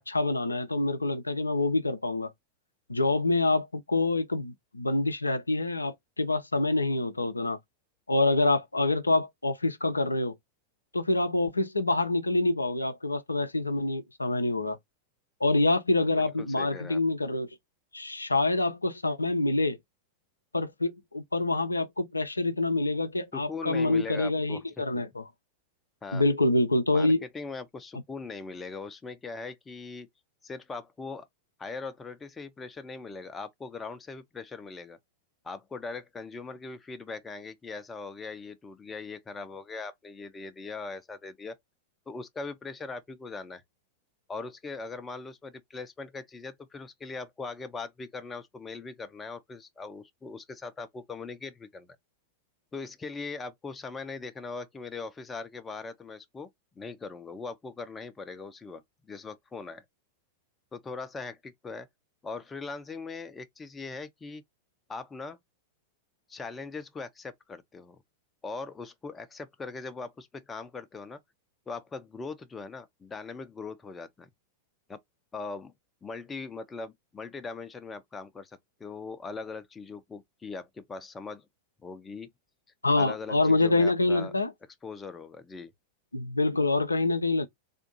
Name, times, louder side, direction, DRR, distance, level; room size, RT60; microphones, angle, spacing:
voice 1, 0.0-2.3 2.9-7.6 8.1-10.3 10.9-14.8 15.4-17.5 17.9-19.8 20.5-25.2 26.1-27.2 82.8-84.5 86.1-87.5, left 2 dB, 80° left, 0.4 m, -26 dB
voice 2, 16.2-17.0 23.3-24.8 26.0-26.3 26.9-30.1 30.4-31.2 31.6-35.0 35.4-41.5 42.1-43.6 44.3-52.0 52.7-56.5 56.8-58.8 59.1-59.8 60.7-61.9 62.2-64.4 64.9-65.4 66.3-68.0 68.4-71.2 71.7-74.3 74.9-75.0 75.3-75.7 76.0-81.4 81.8-82.3 83.0-84.3 84.8-85.7, left 4 dB, 15° left, 0.6 m, -40 dB
3.5 x 2.5 x 2.6 m
figure-of-eight pair, 90°, 0 cm